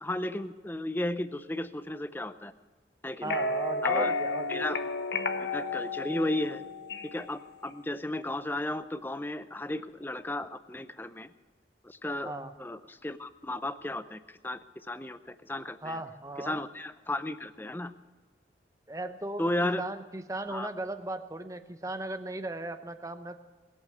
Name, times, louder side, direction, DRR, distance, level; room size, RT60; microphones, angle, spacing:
voice 1, 0.0-2.5 3.0-3.4 3.8-4.1 4.5-4.8 5.4-6.6 7.0-11.3 11.8-12.3 12.6-16.0 16.4-17.9 19.4-19.8 20.5-20.7, left 1 dB, 10° left, 12 dB, 0.5 m, -34 dB
sound 1, 3.2-7.3, left 3 dB, 70° left, 1.1 m, -32 dB
voice 2, 3.2-4.7 12.2-12.5 15.8-16.6 18.9-23.4, right 2 dB, 20° right, 9 dB, 0.8 m, -37 dB
20.5 x 8.3 x 7.9 m, 1.4 s
head